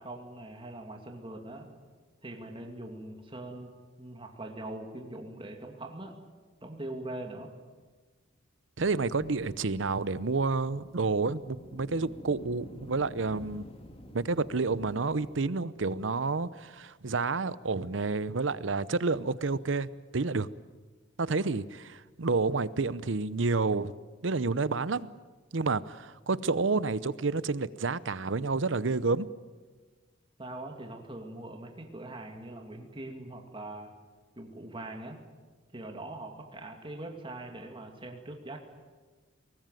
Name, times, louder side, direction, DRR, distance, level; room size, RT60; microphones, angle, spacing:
voice 1, 0.0-1.7 2.2-3.7 4.0-6.2 6.6-7.5 30.4-33.9 34.3-35.2 35.7-38.6, right 1 dB, 25° right, 3 dB, 2.5 m, -42 dB
sound 1, 8.8-15.5, equal, 30° left, 2.5 m, -50 dB
voice 2, 8.8-13.6 14.1-20.5 21.2-23.9 24.2-25.1 25.5-29.3, right 3 dB, 75° right, 17 dB, 0.8 m, -29 dB
23.0 x 19.0 x 9.2 m, 1.4 s
head